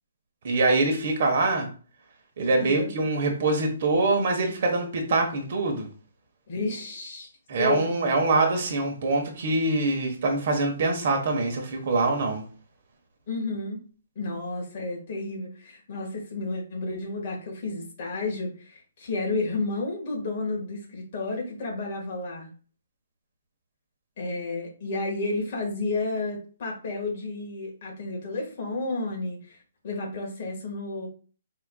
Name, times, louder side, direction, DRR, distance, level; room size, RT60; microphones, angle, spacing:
voice 1, 0.4-1.7 2.4-5.9 7.5-12.4, right 3 dB, 45° right, 4 dB, 1.1 m, -24 dB
voice 2, 2.6-2.9 6.5-7.3 7.5-7.9 13.3-13.8 14.1-22.5 24.2-29.6 29.8-31.1, left 3 dB, 40° left, 0 dB, 1.5 m, -31 dB
4.8 x 4.4 x 2.3 m, 0.39 s
hypercardioid pair, 170°, 0 cm